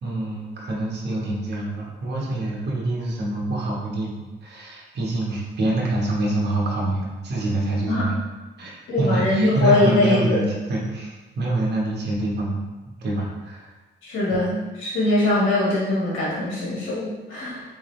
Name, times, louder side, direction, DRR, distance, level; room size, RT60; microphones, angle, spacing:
voice 1, 0.0-8.2 8.6-13.8 14.3-14.4, right 2 dB, 60° right, -3 dB, 1.2 m, -26 dB
voice 2, 8.9-10.4 14.0-17.6, left 2 dB, 70° left, -6 dB, 1.5 m, -22 dB
3.9 x 3.6 x 3.2 m, 1.2 s
cardioid pair, 90°, 20 cm